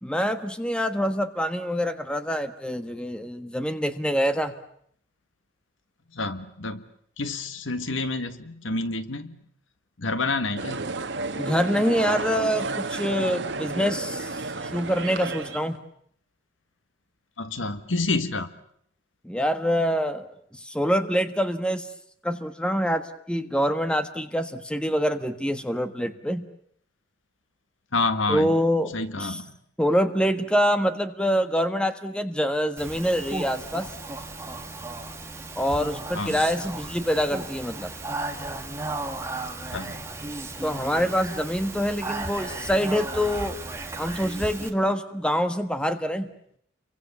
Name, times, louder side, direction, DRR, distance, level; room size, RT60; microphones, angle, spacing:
voice 1, 0.0-4.5 11.3-14.4 14.7-15.8 19.2-20.3 20.5-21.9 22.2-26.5 28.3-29.4 29.8-33.9 35.6-37.9 40.6-43.6 44.0-46.3, equal, 5° left, 9 dB, 1.3 m, -25 dB
voice 2, 6.1-6.8 7.2-9.4 10.0-10.8 17.4-18.5 27.9-28.5 28.9-29.5 36.1-36.4 39.7-40.0, left 3 dB, 85° left, 10 dB, 1.7 m, -28 dB
sound 1, 10.6-15.8, right 3 dB, 65° right, 1.7 m, -31 dB
Speech, 32.8-44.7, right 2 dB, 15° right, 2.0 m, -35 dB
30.0 x 23.5 x 7.0 m, 0.66 s
head